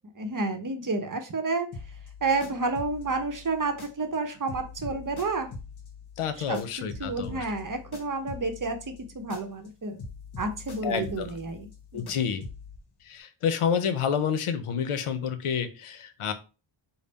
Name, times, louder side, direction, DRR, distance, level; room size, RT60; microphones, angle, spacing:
voice 1, 0.2-1.7 2.2-5.5 6.5-6.6 7.0-8.8 9.1-10.0 10.4-12.2, right 3 dB, 40° right, 7 dB, 0.8 m, -30 dB
sound 1, 1.7-4.2 4.5-9.7 10.0-12.8, left 4 dB, 50° left, 0.9 m, -44 dB
voice 2, 6.2-7.5 10.8-11.3 11.9-12.4 13.0-16.3, left 7 dB, 85° left, 9 dB, 0.6 m, -29 dB
3.3 x 2.1 x 3.9 m, 0.32 s
cardioid pair, 40°, 50 cm